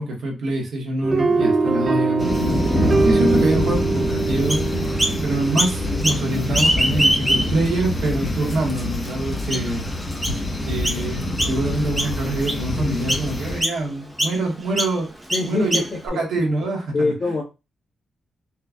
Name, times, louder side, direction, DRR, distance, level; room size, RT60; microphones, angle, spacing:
voice 1, 0.0-2.6 3.0-4.6 5.2-9.8 10.6-15.1 15.5-15.8 16.1-17.1, right 2 dB, 85° right, -1 dB, 1.3 m, -25 dB
sound 1, 1.0-7.3, right 3 dB, 40° right, 0.4 m, -23 dB
sound 2, 2.2-13.6, left 1 dB, 20° left, 0.9 m, -26 dB
Chirp tweet, 4.5-5.2 5.6-6.2 6.5-7.7 8.2-8.3 9.0-9.1 9.5-9.8 10.2-10.4 10.8-11.0 11.4-11.7 12.0-12.6 13.1-13.3 13.6-13.8 14.2-14.4 14.8-14.9 15.3-16.1, equal, 10° right, 0.7 m, -22 dB
voice 2, 15.3-16.2 16.9-17.4, left 2 dB, 50° left, -7 dB, 1.4 m, -24 dB
4.4 x 2.4 x 2.2 m, 0.27 s
cardioid pair, 85°, 0 cm